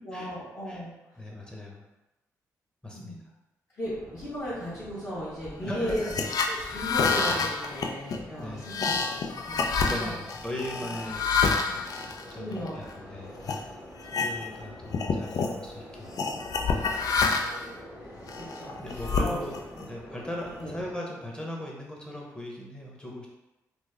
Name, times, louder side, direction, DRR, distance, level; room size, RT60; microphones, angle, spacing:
voice 1, 0.0-0.9 2.9-3.2 3.8-6.0 6.5-10.1 10.7-10.9 12.3-12.9 18.3-19.4 20.1-20.2 20.6-20.7, equal, 45° left, -10 dB, 1.3 m, -36 dB
voice 2, 1.2-1.9 2.8-3.2 5.5-6.1 6.8-6.9 8.4-8.8 9.8-11.3 11.7-11.8 12.3-13.7 14.0-16.1 16.7-16.9 18.8-23.3, left 1 dB, 15° left, -2 dB, 0.9 m, -39 dB
sound 1, 3.8-21.0, equal, 90° left, 0.9 m, -47 dB
sound 2, 5.9-12.9 13.4-13.6 14.0-14.6 14.9-15.6 16.2-17.7 18.3-19.8, left 4 dB, 65° left, 0.3 m, -28 dB
3.2 x 2.0 x 3.3 m, 1.0 s
cardioid pair, 60°, 7 cm